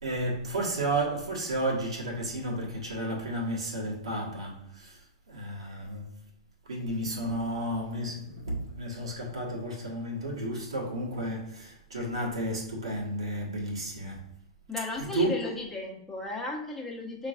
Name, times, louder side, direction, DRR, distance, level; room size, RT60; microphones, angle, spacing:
voice 1, 0.0-6.2 6.6-14.2 15.0-15.4, right 1 dB, 80° right, 1.5 m, -32 dB
voice 2, 14.7-17.3, left 2 dB, 5° left, 1.1 m, -35 dB
5.8 x 3.2 x 2.5 m
hypercardioid pair, 105°, 3 cm